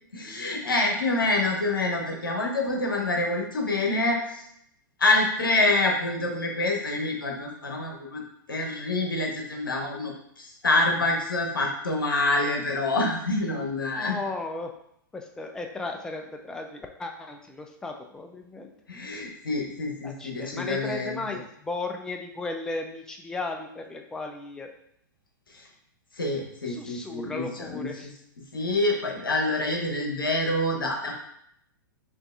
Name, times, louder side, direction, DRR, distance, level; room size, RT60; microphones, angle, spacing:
voice 1, 0.1-4.4 5.0-8.2 8.5-14.2 18.9-21.2 25.5-25.7 26.1-28.1 28.5-31.2, left 2 dB, 85° left, 1 dB, 1.0 m, -26 dB
voice 2, 13.9-14.7 15.1-18.7 20.0-24.7 26.7-28.1, left 3 dB, 5° left, 3 dB, 0.4 m, -35 dB
5.6 x 2.6 x 2.4 m, 0.72 s
hypercardioid pair, 105°, 11 cm